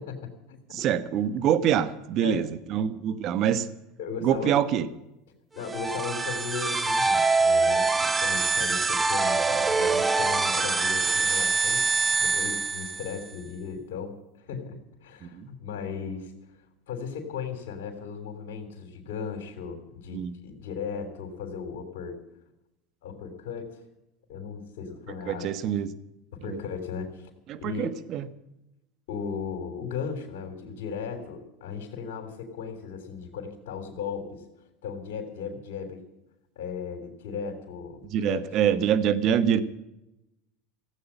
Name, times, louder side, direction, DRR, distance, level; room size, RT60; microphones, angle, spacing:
voice 1, 0.0-0.9 2.2-2.4 4.0-4.5 5.5-11.8 12.1-16.3 16.9-22.2 23.0-23.8 24.3-25.5 26.3-27.3 27.6-27.9 29.1-34.4 34.8-36.0 36.6-38.8, left 6 dB, 80° left, 2 dB, 3.5 m, -36 dB
voice 2, 0.7-3.7 4.2-4.9 15.2-15.5 20.1-20.3 25.3-25.9 26.4-26.6 27.5-28.3 38.1-39.6, right 9 dB, 50° right, 15 dB, 1.2 m, -25 dB
sound 1, 5.6-13.3, right 4 dB, 15° right, 0.9 m, -24 dB
16.0 x 8.6 x 9.9 m, 0.91 s
supercardioid pair, 110°, 0 cm